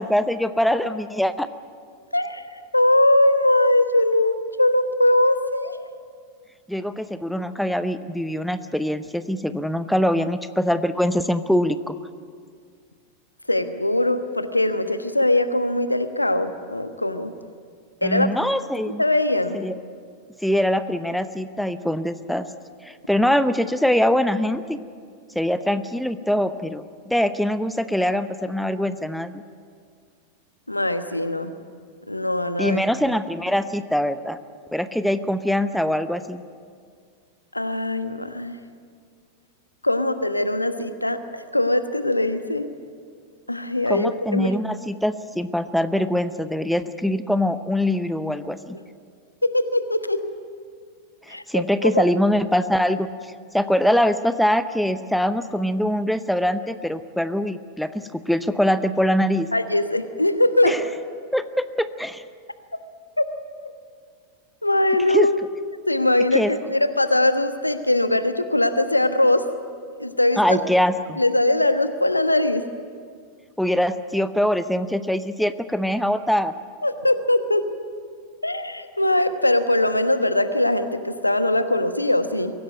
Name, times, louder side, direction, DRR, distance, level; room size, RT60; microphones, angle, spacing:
voice 1, 0.0-1.5 6.7-12.0 18.0-19.0 19.5-19.8 20.4-22.4 22.8-24.8 25.3-29.4 32.6-34.4 34.7-36.4 43.9-48.8 51.3-53.1 53.5-59.5 60.6-60.8 61.3-62.2 65.1-65.3 66.3-66.5 70.4-71.2 73.6-76.5, equal, ahead, 12 dB, 0.8 m, -23 dB
voice 2, 2.1-5.8 13.5-17.3 18.0-18.3 19.0-19.6 30.7-31.5 32.1-32.8 37.5-38.6 39.8-42.6 43.5-44.6 49.4-50.2 51.3-52.0 59.5-60.8 62.7-62.8 63.2-63.3 64.6-65.4 65.9-69.5 70.0-70.6 71.2-72.6 76.8-77.7 78.4-82.5, left 1 dB, 85° left, 10 dB, 1.2 m, -21 dB
23.0 x 16.5 x 9.3 m, 2.1 s
figure-of-eight pair, 90°, 0 cm